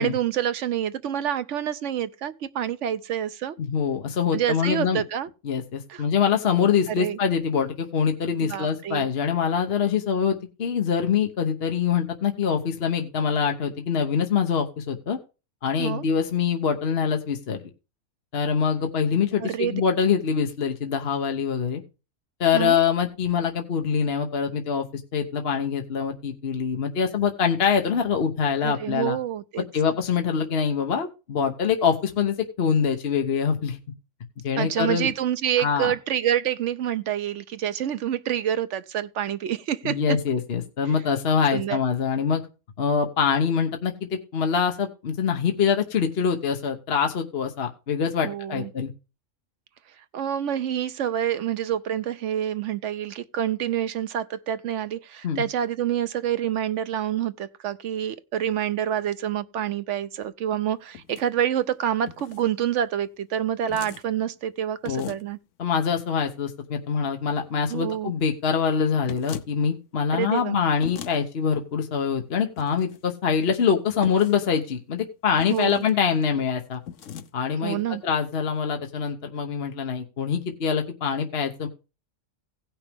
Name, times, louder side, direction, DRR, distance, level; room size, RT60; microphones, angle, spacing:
voice 1, 0.0-3.6 4.3-5.3 5.9-6.1 6.9-7.2 8.4-9.1 15.8-16.0 19.4-19.8 22.5-22.8 28.6-29.7 34.6-40.2 41.5-41.8 48.2-48.7 50.1-65.4 67.7-68.1 70.1-70.6 75.5-75.8 77.6-78.0, right 10 dB, 70° right, 1.0 m, -27 dB
voice 2, 3.6-5.0 5.4-15.2 15.6-17.6 18.3-21.8 22.4-29.2 29.7-33.8 34.4-35.1 35.6-35.9 39.8-42.4 42.8-48.9 55.2-55.4 64.8-65.1 65.6-76.8 77.3-81.7, left 6 dB, 55° left, 1.2 m, -24 dB
sound 1, 60.9-61.3 62.1-62.4 63.7-64.0 64.8-65.3 69.1-69.5 70.8-71.2 72.6-73.0 74.0-74.4 75.4-75.9 76.8-77.3, left 9 dB, 70° left, 1.1 m, -39 dB
17.0 x 6.0 x 3.5 m
omnidirectional pair, 1.3 m